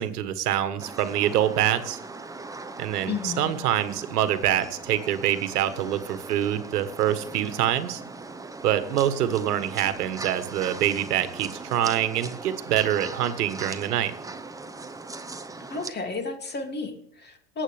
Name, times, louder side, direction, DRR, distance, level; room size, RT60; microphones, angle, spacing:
voice 1, 0.0-2.0 2.8-8.0 8.6-14.1, right 11 dB, 75° right, 11 dB, 1.5 m, -25 dB
sound 1, 0.8-15.9, right 3 dB, 5° right, 0.8 m, -40 dB
voice 2, 3.1-3.6 15.7-17.6, left 4 dB, 20° left, 5 dB, 2.5 m, -32 dB
19.0 x 8.5 x 3.4 m, 0.73 s
hypercardioid pair, 100°, 47 cm